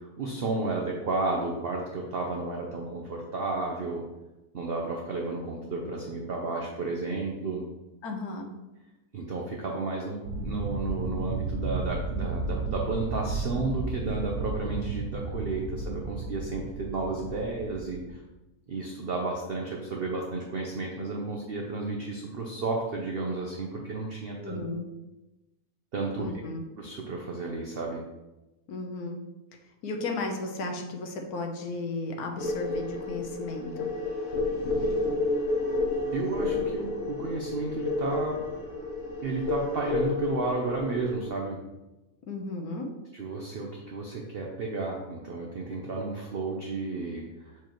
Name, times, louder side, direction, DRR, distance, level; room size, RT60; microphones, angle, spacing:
voice 1, 0.0-4.0 4.5-7.6 9.1-18.2 18.7-24.6 25.9-26.4 26.8-28.0 36.1-38.4 39.2-41.6 43.1-47.6, right 3 dB, 50° right, 0 dB, 0.7 m, -32 dB
voice 2, 8.0-8.5 24.4-24.9 26.2-26.6 28.7-29.2 29.8-33.9 42.3-42.9, left 2 dB, 80° left, 3 dB, 1.3 m, -34 dB
sound 1, 10.3-18.1, right 3 dB, 85° right, 1.2 m, -33 dB
sound 2, 32.4-41.3, left 2 dB, 55° left, 1.2 m, -30 dB
6.9 x 4.6 x 3.0 m, 1.0 s
omnidirectional pair, 1.6 m